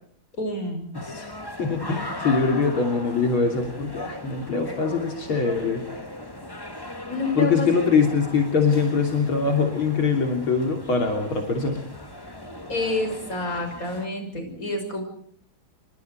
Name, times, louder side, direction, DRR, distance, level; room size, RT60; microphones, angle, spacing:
voice 1, 0.4-0.8 7.1-7.7 12.7-15.0, left 2 dB, 40° left, 5 dB, 6.7 m, -28 dB
sound 1, 0.9-14.1, left 1 dB, 10° left, 2.2 m, -38 dB
voice 2, 1.6-5.8 7.4-11.8, left 5 dB, 75° left, 2 dB, 4.0 m, -23 dB
28.5 x 24.0 x 4.7 m, 0.62 s
omnidirectional pair, 2.3 m